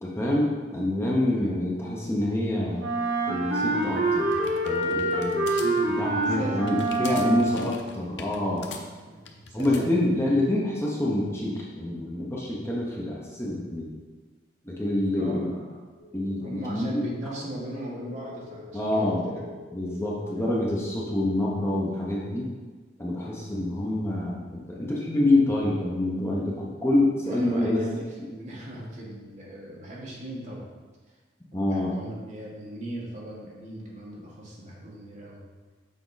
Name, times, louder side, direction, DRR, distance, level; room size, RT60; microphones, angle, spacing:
voice 1, 0.0-2.8 3.3-4.3 4.6-8.7 9.5-13.9 14.6-15.5 16.1-16.4 16.7-17.1 18.7-19.3 19.7-22.5 23.0-27.8 31.5-31.9, left 1 dB, 15° left, -4 dB, 0.9 m, -26 dB
Wind instrument woodwind instrument, 2.8-7.8, right 2 dB, 65° right, 1.3 m, -26 dB
sound 1, 3.7-9.9, left 4 dB, 80° left, 0.7 m, -43 dB
voice 2, 6.2-6.7 8.5-10.3 15.0-15.8 16.4-20.0 20.3-20.4 27.2-30.7 31.1-31.2 31.5-35.5, right 1 dB, 40° right, -4 dB, 1.5 m, -39 dB
sound 2, 16.0-21.6, left 4 dB, 40° left, 1.6 m, -45 dB
7.3 x 4.5 x 4.0 m, 1.4 s
head